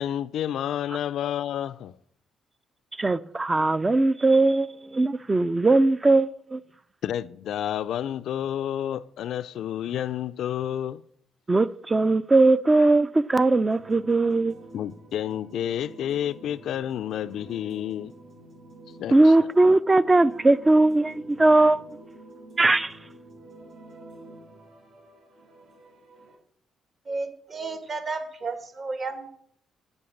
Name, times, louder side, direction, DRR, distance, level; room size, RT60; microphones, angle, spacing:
voice 1, 0.0-2.0 7.0-11.0 14.7-18.1 19.0-19.5, left 10 dB, 75° left, 0.3 m, -30 dB
voice 2, 3.0-6.6 11.5-14.6 19.1-21.8 22.6-22.9, right 2 dB, 20° right, 0.4 m, -20 dB
sound 1, 13.7-26.3, right 2 dB, 75° right, 4.5 m, -48 dB
voice 3, 27.1-29.4, right 3 dB, 40° right, 1.4 m, -33 dB
8.1 x 5.4 x 7.1 m
cardioid pair, 90°, 0 cm